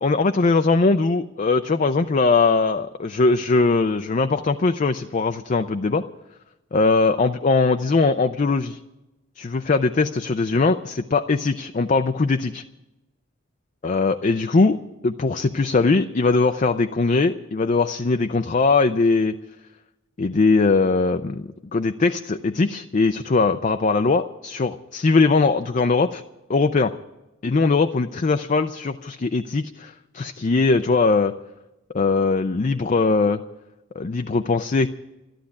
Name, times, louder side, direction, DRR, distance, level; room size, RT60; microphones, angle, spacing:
voice 1, 0.0-6.0 6.7-8.8 9.4-12.6 13.8-19.4 20.2-26.2 26.5-26.9 27.4-31.3 31.9-33.4 34.0-34.9, left 3 dB, 40° left, 8 dB, 0.5 m, -20 dB
13.0 x 11.5 x 8.5 m, 1.0 s
head